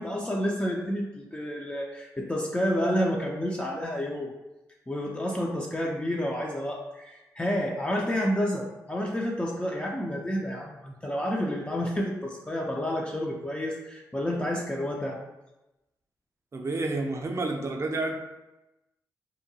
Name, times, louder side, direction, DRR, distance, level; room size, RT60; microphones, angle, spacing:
voice 1, 0.0-4.3 4.9-15.2, equal, 15° left, -2 dB, 0.4 m, -30 dB
voice 2, 16.5-18.1, right 2 dB, 40° right, 3 dB, 0.5 m, -29 dB
2.7 x 2.2 x 2.7 m, 0.99 s
supercardioid pair, 50°, 8 cm